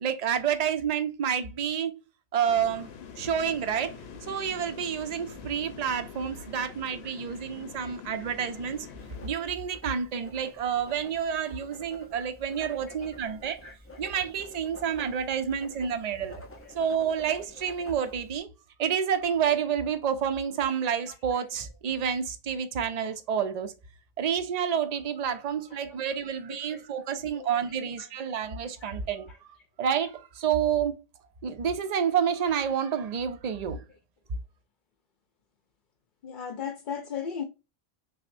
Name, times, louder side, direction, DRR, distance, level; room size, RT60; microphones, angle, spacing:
voice 1, 0.0-2.0 2.3-2.9 3.2-4.0 4.3-8.9 9.2-13.6 14.0-16.4 16.7-18.5 18.8-23.7 24.2-29.3 29.8-31.0 31.4-33.8 34.3-34.4, right 8 dB, 50° right, 0.6 m, -29 dB
sound 1, 2.5-9.3, left 7 dB, 85° left, 0.9 m, -45 dB
Writing, 9.0-18.4, left 1 dB, 15° left, 0.5 m, -49 dB
voice 2, 12.6-13.1 13.6-14.0 15.8-15.9 21.3-21.5 25.7-25.8 26.5-26.8 27.1-28.3 28.8-29.0 29.3-29.4 36.2-37.4, left 7 dB, 55° left, 0.7 m, -39 dB
5.8 x 2.1 x 2.5 m
omnidirectional pair, 1.0 m